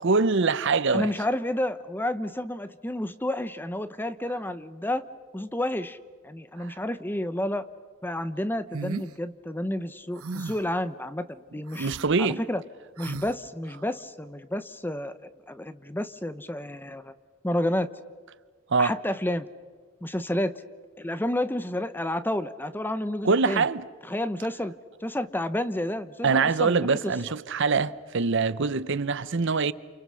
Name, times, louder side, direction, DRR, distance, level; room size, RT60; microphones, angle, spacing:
voice 1, 0.0-1.1 6.6-6.8 11.8-12.4 18.7-18.9 23.2-23.8 26.2-29.7, right 4 dB, 55° right, 0.7 m, -24 dB
voice 2, 0.9-5.0 5.3-6.0 6.2-7.6 8.0-11.9 12.2-12.6 13.0-15.1 15.5-17.1 17.4-17.9 18.8-19.5 20.0-20.5 21.0-23.6 24.1-24.7 25.0-27.1, left 1 dB, 10° left, 0.8 m, -30 dB
sound 1, 8.7-9.1 10.2-10.7 11.7-12.1 13.0-13.3, right 3 dB, 85° right, 0.9 m, -36 dB
28.5 x 28.5 x 6.4 m
head